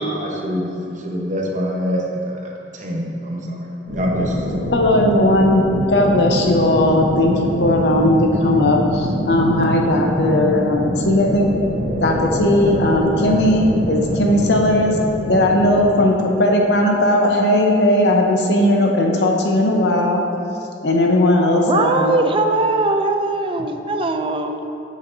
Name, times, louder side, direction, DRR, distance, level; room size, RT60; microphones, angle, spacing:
voice 1, 0.0-2.4 2.7-4.4, equal, 45° right, -1 dB, 0.9 m, -25 dB
sound 1, 3.9-15.8, equal, 75° right, 1.6 m, -24 dB
voice 2, 4.7-5.6 5.9-7.3 7.6-11.5 12.0-15.0 15.3-20.2 20.8-22.1, left 1 dB, 70° left, 1 dB, 0.8 m, -17 dB
voice 3, 21.5-24.7, right 2 dB, 30° right, 6 dB, 0.4 m, -20 dB
7.4 x 7.0 x 2.7 m, 2.7 s
head